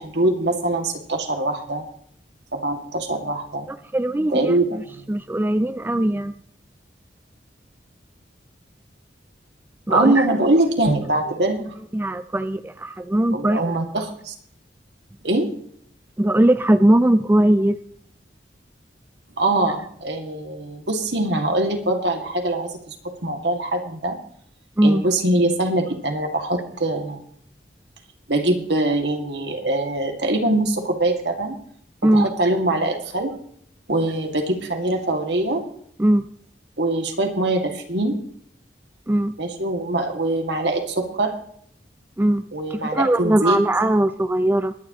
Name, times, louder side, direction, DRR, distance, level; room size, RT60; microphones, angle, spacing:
voice 1, 0.0-1.8 2.5-3.7 4.3-5.1 9.9-11.8 13.3-14.3 15.2-15.5 19.4-24.2 24.8-27.2 28.3-31.6 32.0-33.3 33.9-35.6 36.8-38.2 39.4-41.3 42.5-43.6, right 2 dB, 70° right, 3 dB, 2.2 m, -23 dB
voice 2, 3.7-4.8 5.1-6.3 9.9-10.3 11.9-13.6 16.2-17.8 24.8-25.0 32.0-32.3 36.0-36.2 39.1-39.3 42.2-44.8, right 1 dB, 10° right, 11 dB, 0.4 m, -20 dB
22.5 x 10.0 x 3.0 m, 0.63 s
head